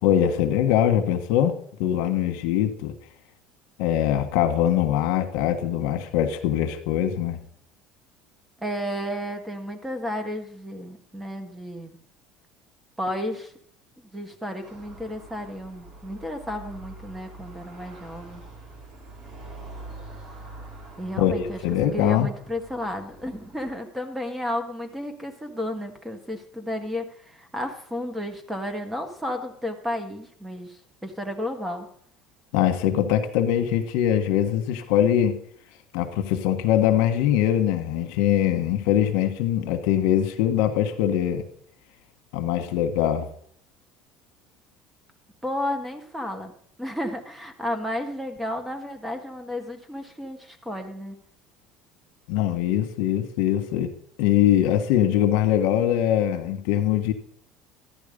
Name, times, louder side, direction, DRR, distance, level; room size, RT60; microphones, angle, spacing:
voice 1, 0.0-2.9 3.8-7.4 21.2-22.3 32.5-35.4 35.9-41.4 42.3-43.3 52.3-53.9 54.2-57.1, left 11 dB, 75° left, 7 dB, 1.4 m, -22 dB
voice 2, 8.6-12.0 13.0-13.5 14.1-18.4 21.0-21.6 21.9-31.9 45.4-46.5 46.8-51.2, left 1 dB, 10° right, 6 dB, 1.7 m, -32 dB
sound 1, 14.6-23.8, right 2 dB, 50° right, 5.9 m, -44 dB
13.5 x 10.5 x 5.3 m, 0.63 s
cardioid pair, 145°, 0 cm